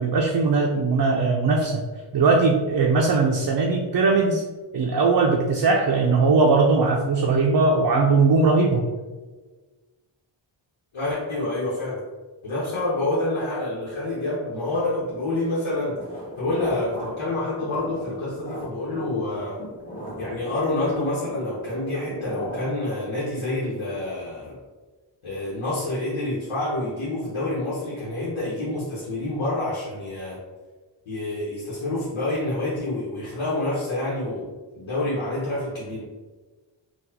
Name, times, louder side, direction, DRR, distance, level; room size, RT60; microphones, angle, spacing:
voice 1, 0.0-1.8 2.1-4.4 4.7-8.9, right 3 dB, 50° right, 0 dB, 0.5 m, -20 dB
voice 2, 10.9-12.0 12.4-16.0 16.4-19.6 20.2-24.6 25.2-30.4 31.1-34.5 34.7-36.1, left 2 dB, 90° left, -8 dB, 1.0 m, -27 dB
sound 1, 15.8-22.8, equal, 20° left, 1.2 m, -38 dB
3.9 x 2.3 x 2.8 m, 1.3 s
cardioid pair, 50°, 47 cm